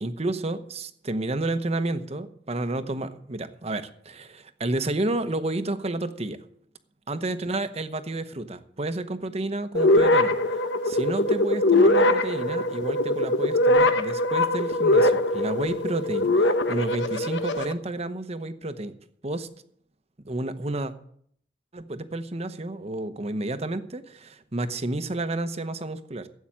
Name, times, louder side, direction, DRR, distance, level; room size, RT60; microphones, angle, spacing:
voice 1, 0.0-6.4 7.1-18.9 19.2-19.5 20.2-20.9 21.7-26.3, right 2 dB, 35° right, 11 dB, 0.9 m, -31 dB
sound 1, 9.7-17.7, left 1 dB, 80° left, 1.0 m, -22 dB
13.0 x 8.6 x 7.5 m, 0.65 s
head